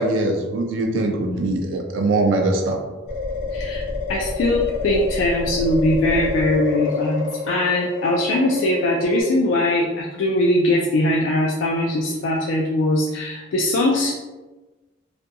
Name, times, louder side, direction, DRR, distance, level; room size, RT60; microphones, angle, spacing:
voice 1, 0.0-2.8, right 2 dB, 90° right, 2 dB, 0.4 m, -22 dB
sound 1, 3.1-9.2, left 4 dB, 40° left, 0.7 m, -27 dB
voice 2, 3.5-3.8 4.1-14.1, left 1 dB, 85° left, -3 dB, 0.3 m, -21 dB
2.5 x 2.2 x 2.6 m, 1.2 s
head